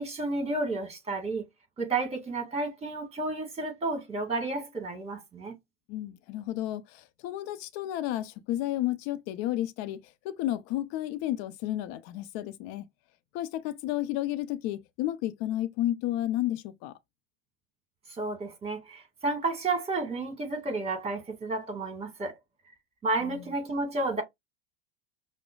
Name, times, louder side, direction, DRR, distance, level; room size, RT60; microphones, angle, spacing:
voice 1, 0.0-1.4 1.8-5.5 18.1-22.3 23.0-24.2, right 3 dB, 20° right, 1.7 m, -31 dB
voice 2, 5.9-12.9 13.3-16.9 23.2-23.5, left 14 dB, 50° left, 0.6 m, -32 dB
6.0 x 2.2 x 2.3 m
hypercardioid pair, 90°, 31 cm